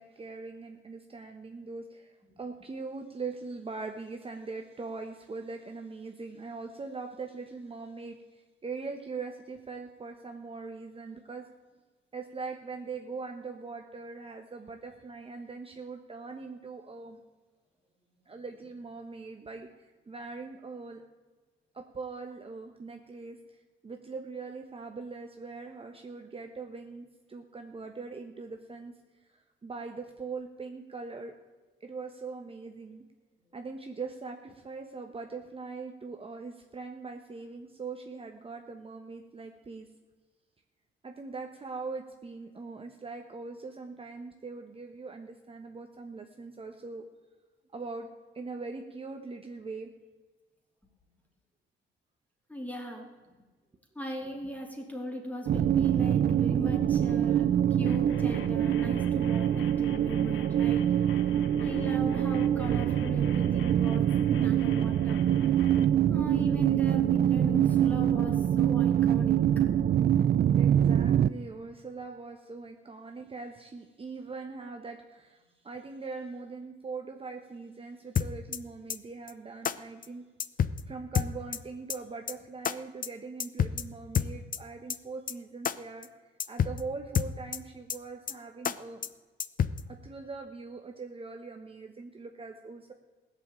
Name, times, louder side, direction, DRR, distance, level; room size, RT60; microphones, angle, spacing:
voice 1, 0.0-11.5 12.1-17.2 18.3-21.0 21.7-29.0 29.3-31.3 31.8-33.0 33.5-39.9 41.0-47.0 47.7-48.1 48.3-49.9 61.4-61.5 62.8-62.9 70.6-80.3 80.9-86.1 86.5-89.0 89.9-92.9, right 4 dB, 30° right, 4 dB, 1.2 m, -41 dB
voice 2, 52.5-53.2 53.9-61.0 61.6-65.2 66.1-69.7, equal, 5° left, 2 dB, 3.1 m, -38 dB
sound 1, 55.5-71.3, right 10 dB, 50° right, 0.5 m, -25 dB
sound 2, 57.9-65.9, left 9 dB, 75° left, 1.0 m, -49 dB
sound 3, 78.2-78.6 78.9-79.0 79.3-79.4 79.6-79.8 80.0-80.1 80.4-80.8 81.1-81.6 81.9-82.0 82.3-82.4 82.6-82.7 83.0-83.1 83.4-83.8 84.1-84.6 84.9-85.0 85.3-85.4 85.6-85.8 86.0-86.1 86.4-86.8 87.1-87.6 87.9-88.0 88.3-88.4 88.6-88.8 89.0-89.1 89.4-89.8, left 8 dB, 45° left, 0.7 m, -28 dB
16.0 x 7.2 x 8.8 m, 1.3 s
cardioid pair, 90°, 20 cm